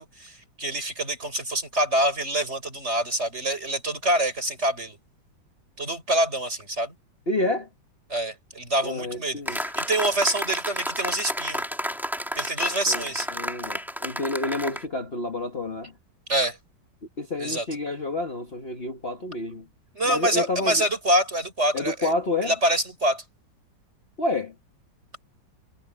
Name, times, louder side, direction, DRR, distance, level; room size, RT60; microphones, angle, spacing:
voice 1, 0.0-5.0 5.8-6.9 8.1-11.6 12.4-13.3 16.3-16.6 17.4-17.6 19.9-22.1 22.4-23.2, right 1 dB, 35° right, 6.8 m, -26 dB
voice 2, 7.3-7.7 8.8-9.6 12.9-15.9 17.2-19.6 20.0-20.9 21.7-22.5 24.2-24.5, left 2 dB, 35° left, 1.8 m, -29 dB
sound 1, 9.5-14.8, equal, ahead, 2.3 m, -31 dB
omnidirectional pair, 2.0 m